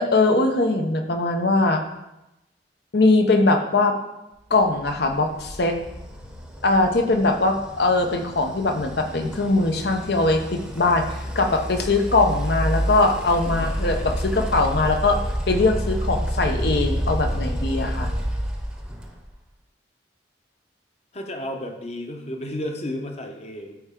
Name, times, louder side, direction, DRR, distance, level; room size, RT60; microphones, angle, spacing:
voice 1, 0.0-1.8 2.9-4.0 4.5-5.8 6.6-15.2 15.5-18.1, left 2 dB, 65° left, 5 dB, 0.9 m, -21 dB
sound 1, 4.8-19.3, equal, 5° right, 0.8 m, -29 dB
voice 2, 21.1-23.8, left 1 dB, 40° left, 3 dB, 1.0 m, -33 dB
12.5 x 4.6 x 3.8 m, 0.93 s
head